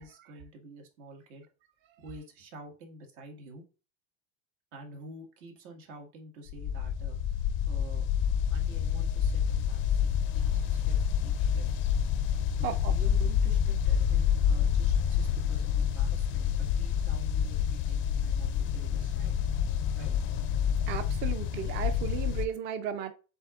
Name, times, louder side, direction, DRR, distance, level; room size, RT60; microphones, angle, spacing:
voice 1, 0.0-1.5 2.0-3.6 4.7-7.2 7.7-8.1 8.5-11.7 12.6-19.4 19.9-20.2, right 1 dB, 75° right, 1.7 m, -49 dB
sound 1, 6.5-22.5, left 8 dB, 35° left, 0.4 m, -28 dB
voice 2, 20.9-23.1, right 8 dB, 30° right, 0.4 m, -35 dB
7.7 x 2.7 x 2.4 m
cardioid pair, 145°, 36 cm